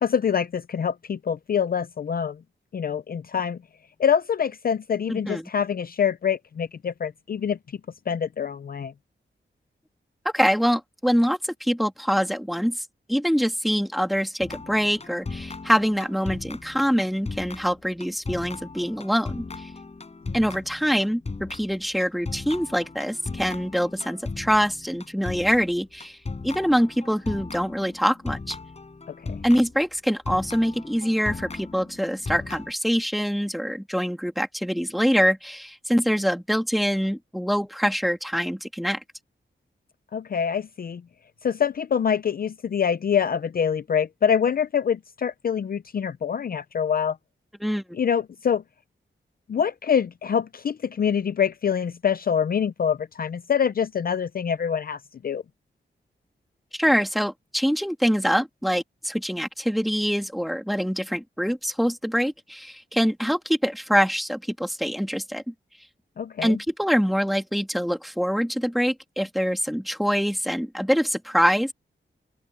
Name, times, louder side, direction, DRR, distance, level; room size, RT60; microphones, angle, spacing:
voice 1, 0.0-2.4 2.7-3.6 4.0-7.6 8.1-8.9 20.3-20.4 29.2-29.4 40.1-41.0 41.4-47.2 47.9-48.6 49.5-55.4 66.2-66.6, left 7 dB, 50° left, 0.5 m, -25 dB
voice 2, 5.1-5.4 10.3-19.7 20.3-26.2 26.4-28.6 29.4-39.0 47.6-47.8 56.7-65.5 66.4-71.7, equal, ahead, 1.9 m, -24 dB
sound 1, 14.4-29.9 30.3-32.7, left 3 dB, 35° left, 4.4 m, -37 dB
open air
wide cardioid pair, 165°, 19 cm